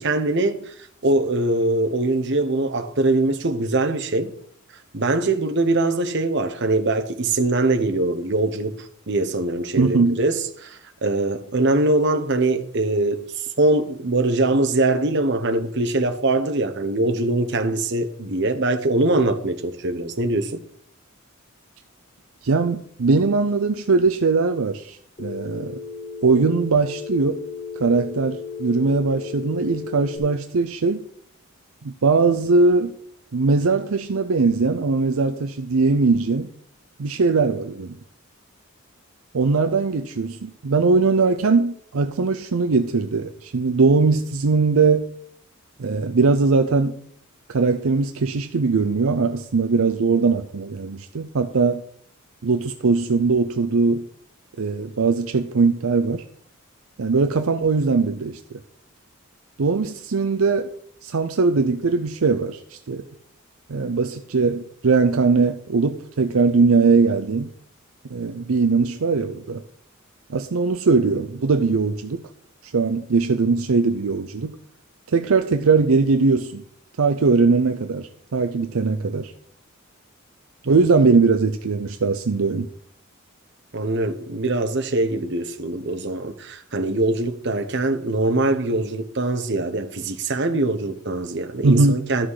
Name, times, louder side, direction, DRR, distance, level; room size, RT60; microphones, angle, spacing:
voice 1, 0.0-4.3 4.9-20.6 80.6-80.7 83.7-92.3, right 2 dB, 55° right, 1.0 m, -22 dB
voice 2, 9.8-10.2 22.4-25.8 26.2-27.4 27.8-31.0 31.8-33.0 33.3-36.5 37.0-38.0 39.3-45.1 45.8-47.0 47.5-51.8 52.4-54.1 54.6-56.2 57.0-58.6 59.6-60.7 61.0-63.0 63.7-67.5 68.1-69.6 70.3-72.2 72.6-74.6 75.1-76.6 77.0-79.3 80.7-82.7 91.6-92.0, right 4 dB, 75° right, 0.6 m, -20 dB
Telephone, 25.2-30.2, left 6 dB, 30° left, 2.2 m, -34 dB
13.0 x 6.1 x 4.8 m
head